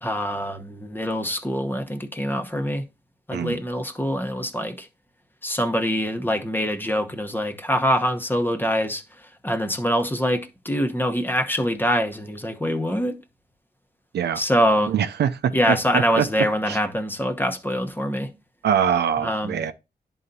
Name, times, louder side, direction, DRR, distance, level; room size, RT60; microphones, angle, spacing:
voice 1, 0.0-2.8 3.3-4.9 5.4-13.2 14.3-14.9 15.5-18.3 19.2-19.6, equal, 10° left, 1.0 m, -24 dB
voice 2, 14.9-16.3 16.7-16.8 18.6-19.7, right 8 dB, 85° right, 0.6 m, -23 dB
11.0 x 3.9 x 2.7 m
cardioid pair, 65°, 17 cm